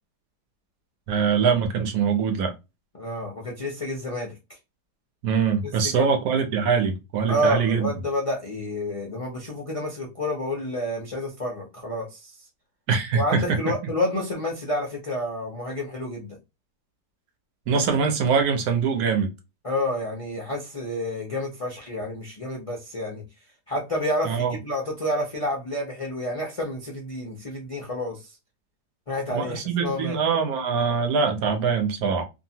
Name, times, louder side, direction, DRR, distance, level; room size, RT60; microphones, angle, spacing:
voice 1, 1.1-2.5 5.2-7.9 12.9-13.4 17.7-19.3 24.2-24.6 29.3-32.2, right 6 dB, 70° right, 1.1 m, -23 dB
voice 2, 2.9-4.3 5.6-6.1 7.3-12.3 13.1-16.4 19.6-23.2 23.7-28.4 29.1-30.2, left 1 dB, 45° left, 0.4 m, -29 dB
2.8 x 2.5 x 2.7 m
omnidirectional pair, 1.8 m